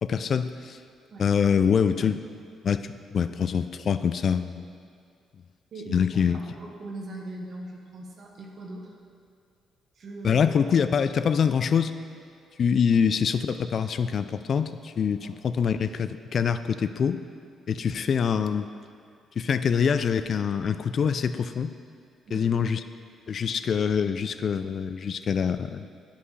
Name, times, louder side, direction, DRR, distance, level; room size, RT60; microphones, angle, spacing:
voice 1, 0.0-0.8 1.2-2.2 2.6-4.6 5.9-6.4 10.2-11.9 12.6-17.2 17.7-18.7 19.4-21.7 22.3-22.8 23.3-25.9, left 7 dB, 55° left, 11 dB, 0.3 m, -25 dB
voice 2, 5.7-8.9 9.9-10.4 15.2-15.3 22.3-22.5, right 1 dB, 55° right, -2 dB, 1.2 m, -40 dB
11.0 x 5.5 x 3.2 m, 2.3 s
cardioid pair, 90°, 0 cm